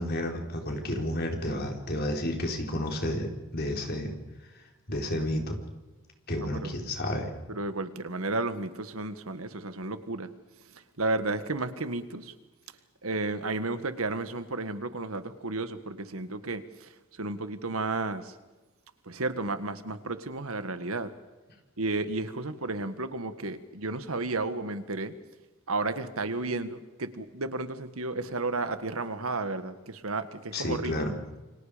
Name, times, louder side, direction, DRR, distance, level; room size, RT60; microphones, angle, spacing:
voice 1, 0.0-4.1 4.9-5.6 6.3-7.3 30.5-31.1, left 1 dB, 45° left, 2 dB, 4.5 m, -31 dB
voice 2, 6.4-6.7 7.5-10.3 10.7-12.3 13.0-18.3 19.1-21.1 21.8-25.1 25.7-30.9, right 2 dB, 85° right, 10 dB, 1.7 m, -33 dB
28.5 x 25.0 x 5.2 m, 1.2 s
head